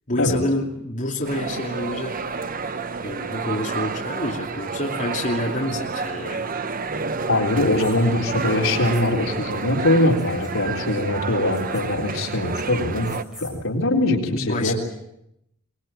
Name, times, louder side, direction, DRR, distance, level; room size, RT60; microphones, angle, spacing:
voice 1, 0.1-2.2 3.0-6.5 14.3-14.8, left 1 dB, 40° left, -2 dB, 2.7 m, -28 dB
sound 1, 1.2-13.2, right 4 dB, 45° right, 1.0 m, -30 dB
voice 2, 7.3-13.1 13.4-14.8, left 1 dB, 70° left, 1 dB, 3.9 m, -22 dB
sound 2, 7.7-8.0 8.9-9.0 10.2-10.5 11.5-11.8 13.0-13.5, left 2 dB, 5° right, 7.3 m, -43 dB
23.5 x 20.5 x 9.0 m, 0.81 s
head